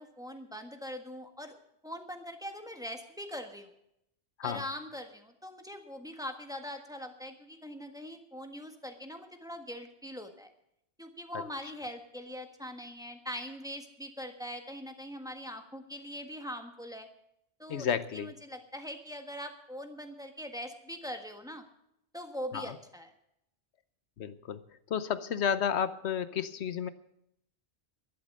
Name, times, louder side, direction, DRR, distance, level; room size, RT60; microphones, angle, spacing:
voice 1, 0.0-1.6 1.8-3.7 4.4-10.5 11.0-17.1 17.6-17.9 18.1-21.6 22.1-23.1, equal, 5° right, 5 dB, 1.4 m, -42 dB
voice 2, 17.7-18.3 22.5-22.8 24.2-24.6 24.9-26.9, left 8 dB, 80° left, 13 dB, 1.1 m, -32 dB
11.5 x 11.5 x 6.6 m, 0.77 s
omnidirectional pair, 1.1 m